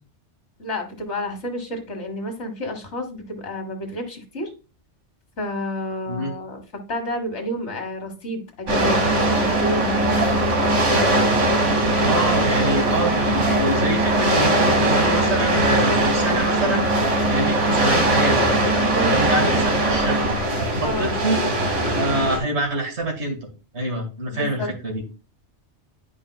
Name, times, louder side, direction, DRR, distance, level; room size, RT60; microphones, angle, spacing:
voice 1, 0.6-4.5 5.4-6.6 6.9-11.3 18.9-19.3 20.8-21.1 24.3-24.7, equal, 70° left, 5 dB, 1.8 m, -30 dB
sound 1, 8.7-22.4, right 1 dB, 90° right, 1.9 m, -20 dB
voice 2, 12.0-16.8 17.2-18.5 19.0-20.4 20.7-21.4 21.9-25.0, right 1 dB, 70° right, 1 dB, 2.3 m, -26 dB
10.5 x 5.0 x 2.3 m, 0.33 s
omnidirectional pair, 1.2 m